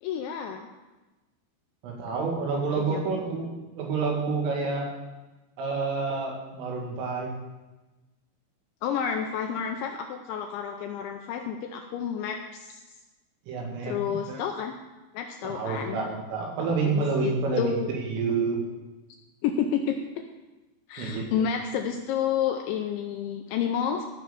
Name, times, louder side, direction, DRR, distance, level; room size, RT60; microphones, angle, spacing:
voice 1, 0.0-0.7 2.8-3.0 8.8-12.8 13.8-14.7 15.1-16.0 16.8-17.9 19.4-20.0 20.9-24.1, left 8 dB, 85° left, 4 dB, 2.7 m, -30 dB
voice 2, 1.8-3.5 3.8-4.9 5.6-7.3 13.5-14.4 15.4-18.6 21.0-21.5, right 4 dB, 75° right, -1 dB, 4.7 m, -29 dB
15.0 x 6.3 x 6.8 m, 1.1 s
omnidirectional pair, 6.0 m